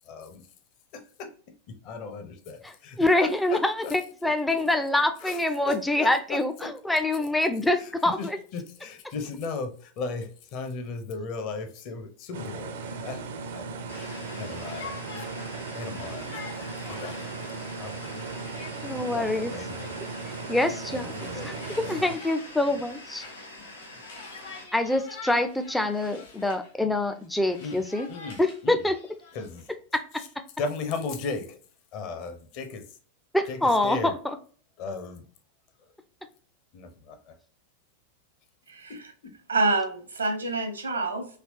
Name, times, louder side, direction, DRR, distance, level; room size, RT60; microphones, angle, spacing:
voice 1, 0.0-0.5 0.9-1.3 1.7-4.0 5.2-6.7 7.8-13.2 13.5-13.7 14.4-18.1 19.0-20.0 20.9-22.0 27.6-27.8 28.1-28.9 29.3-29.7 30.2-30.3 30.6-31.6 31.9-33.0 33.5-34.1 34.8-35.2 35.8-35.9 36.7-37.4 38.9-39.0 39.2-39.3, left 4 dB, 40° left, 6 dB, 0.7 m, -37 dB
voice 2, 3.0-8.4 18.8-19.5 20.5-21.1 21.4-21.5 21.9-23.2 24.7-28.1 28.4-28.9 33.3-34.1, left 1 dB, 5° left, 7 dB, 0.4 m, -25 dB
sound 1, 12.3-22.2, right 4 dB, 60° right, 0.5 m, -37 dB
sound 2, 13.9-24.6, left 1 dB, 85° left, 0.9 m, -45 dB
Conversation, 13.9-26.7 27.1-29.7, left 4 dB, 65° left, 1.5 m, -47 dB
voice 3, 39.5-41.3, right 3 dB, 75° right, 5 dB, 0.8 m, -27 dB
3.3 x 2.8 x 2.7 m, 0.43 s
figure-of-eight pair, 90°, 0 cm